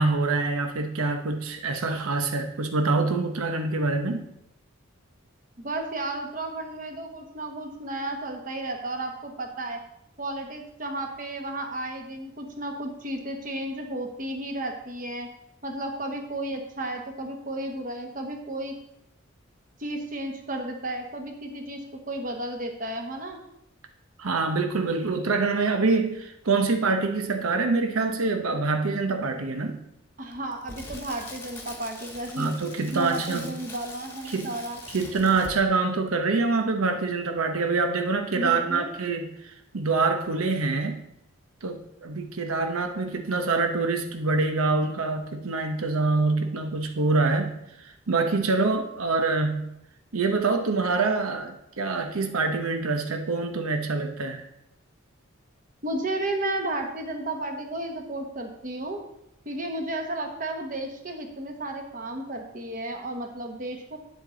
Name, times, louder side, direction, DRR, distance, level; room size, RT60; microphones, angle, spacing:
voice 1, 0.0-4.2 24.2-29.8 32.4-33.5 34.3-34.5 34.9-41.0 41.6-49.7 50.1-54.4, right 3 dB, 90° right, 6 dB, 0.8 m, -25 dB
voice 2, 5.6-9.8 10.2-15.3 15.6-18.8 19.8-23.4 30.2-32.5 32.9-34.8 38.3-38.9 55.8-59.0 59.4-64.0, right 1 dB, 40° right, 3 dB, 1.2 m, -33 dB
Crackle, 30.3-35.8 36.1-36.2, left 2 dB, 10° left, 1.2 m, -43 dB
9.0 x 7.8 x 3.8 m, 0.80 s
head